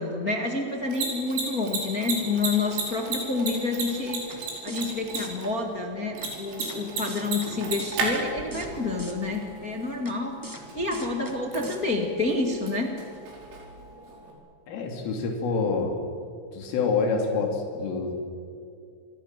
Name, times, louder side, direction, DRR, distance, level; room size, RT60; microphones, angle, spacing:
voice 1, 0.0-10.4 10.7-12.9, left 3 dB, 55° left, 2 dB, 1.0 m, -29 dB
Mechanisms, 0.7-14.3, right 3 dB, 80° right, 7.3 m, -35 dB
sound 1, 4.3-4.4 4.7-4.9 5.1-5.3 6.2-6.3 6.6-6.8 7.1-7.5 7.8-8.2 8.5-8.7 9.0-9.1 10.1-10.2 10.4-10.6 10.9-11.3 11.6-11.8, equal, 10° right, 1.1 m, -39 dB
voice 2, 14.7-16.0 16.5-18.1, left 4 dB, 85° left, 2 dB, 5.2 m, -27 dB
29.5 x 24.5 x 7.5 m, 2.4 s
omnidirectional pair, 5.7 m